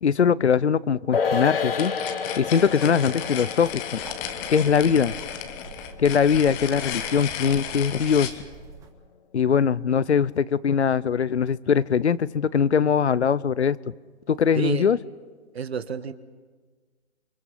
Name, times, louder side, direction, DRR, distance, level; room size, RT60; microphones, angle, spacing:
voice 1, 0.0-1.9 2.4-4.0 4.5-5.1 6.0-8.3 9.3-13.8 14.3-15.0, left 7 dB, 70° left, 20 dB, 0.9 m, -21 dB
sound 1, 1.1-7.8 8.1-8.2, left 6 dB, 55° left, 2.2 m, -31 dB
sound 2, 1.7-8.4, left 9 dB, 10° left, 0.6 m, -34 dB
sound 3, 2.3-8.9, right 5 dB, 10° right, 1.6 m, -45 dB
voice 2, 14.5-14.9 15.5-16.1, right 6 dB, 60° right, 12 dB, 1.6 m, -30 dB
29.0 x 24.0 x 5.7 m, 1.4 s
figure-of-eight pair, 145°, 35 cm